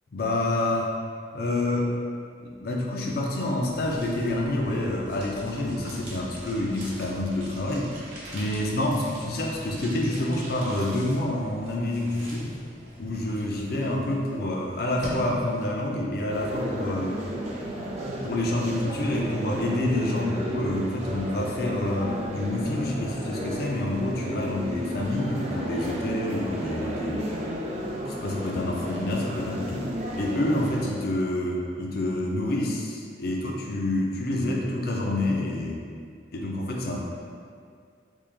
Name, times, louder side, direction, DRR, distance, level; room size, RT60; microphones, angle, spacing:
voice 1, 0.1-0.9 1.3-1.9 2.4-7.9 8.3-12.5 13.0-17.2 18.2-27.2 28.1-29.9 30.2-35.8 36.3-37.0, left 1 dB, 55° left, -1 dB, 0.5 m, -28 dB
sound 1, 3.4-15.9, equal, 65° right, 0.8 m, -42 dB
sound 2, 16.3-30.9, right 1 dB, 35° right, 0.4 m, -33 dB
3.5 x 2.4 x 3.2 m, 2.2 s
head